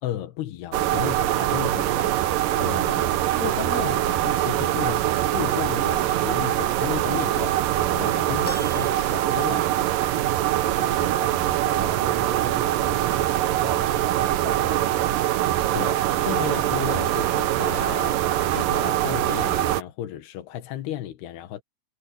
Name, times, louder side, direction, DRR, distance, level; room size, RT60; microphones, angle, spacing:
voice 1, 0.0-5.0 5.3-9.7 15.7-21.6, left 12 dB, 90° left, 3.5 m, -34 dB
sound 1, 0.7-19.8, right 13 dB, 70° right, 2.3 m, -23 dB
sound 2, 8.4-10.1 10.5-10.6 11.8-11.9, left 1 dB, ahead, 7.6 m, -40 dB
voice 2, 10.8-15.2, right 4 dB, 45° right, 6.1 m, -36 dB
omnidirectional pair, 4.5 m